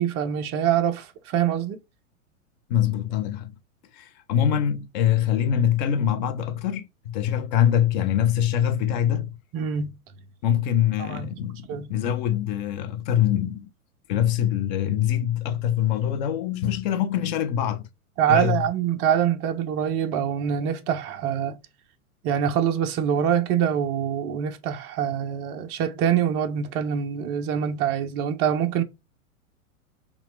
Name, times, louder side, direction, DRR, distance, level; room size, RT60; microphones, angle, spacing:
voice 1, 0.0-1.8 9.5-9.9 11.0-11.3 11.7-11.9 18.2-21.6 22.2-28.8, right 9 dB, 25° right, 0.4 m, -24 dB
voice 2, 2.7-3.5 3.9-9.4 10.4-13.7 14.1-17.9 18.3-18.7, left 10 dB, 35° left, 0.5 m, -24 dB
5.5 x 2.2 x 3.1 m
figure-of-eight pair, 100°, 43 cm